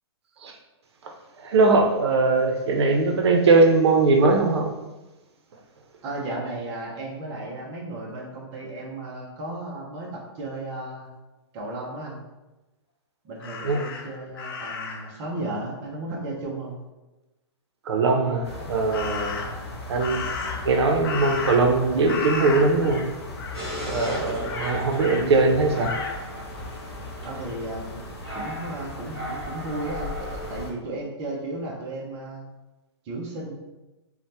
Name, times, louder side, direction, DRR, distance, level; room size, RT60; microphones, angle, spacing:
voice 1, 1.0-4.7 13.6-13.8 17.9-19.6 19.9-20.2 20.6-23.0 23.8-25.9, right 3 dB, 75° right, 4 dB, 0.5 m, -21 dB
voice 2, 6.0-11.1 11.5-12.2 13.2-16.8 27.2-28.1 28.3-32.4 33.0-33.5, right 2 dB, 20° right, -3 dB, 0.4 m, -34 dB
Crow, 13.4-15.1 18.9-19.6 20.0-21.8 22.1-23.1 23.4-23.6 23.9-25.3 25.8-26.2, left 5 dB, 55° left, 0.4 m, -33 dB
sound 1, 18.4-30.7, left 2 dB, 70° left, 0.9 m, -38 dB
sound 2, 23.5-30.7, equal, 5° left, 1.0 m, -36 dB
2.7 x 2.1 x 3.2 m, 1.1 s
hypercardioid pair, 170°, 14 cm